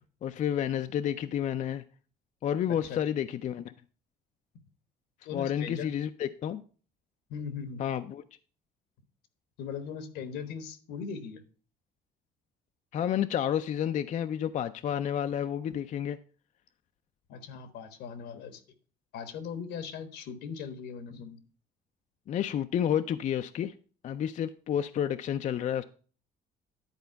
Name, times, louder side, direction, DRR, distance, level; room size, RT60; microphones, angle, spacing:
voice 1, 0.2-1.8 2.4-3.7 5.3-6.6 7.8-8.2 12.9-16.2 22.3-23.7 24.0-25.8, left 9 dB, 45° left, 0.4 m, -30 dB
voice 2, 2.7-3.0 5.2-5.9 7.3-7.8 9.6-11.4 17.3-18.6 19.1-21.4, left 6 dB, 85° left, 1.3 m, -39 dB
10.5 x 4.4 x 5.6 m
cardioid pair, 110°, 17 cm